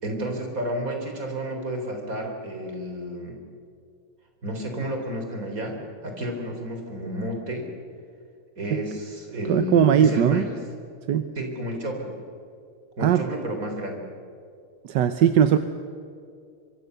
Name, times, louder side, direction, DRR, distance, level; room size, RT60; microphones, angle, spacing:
voice 1, 0.0-3.4 4.4-5.8 6.0-7.7 8.6-10.6 11.4-12.2 13.0-14.0, equal, 40° right, 3 dB, 4.3 m, -31 dB
voice 2, 9.5-10.4 11.1-11.3 13.0-13.2 14.8-15.6, right 9 dB, 65° right, 10 dB, 1.3 m, -19 dB
25.5 x 23.5 x 6.8 m, 2.4 s
omnidirectional pair, 2.4 m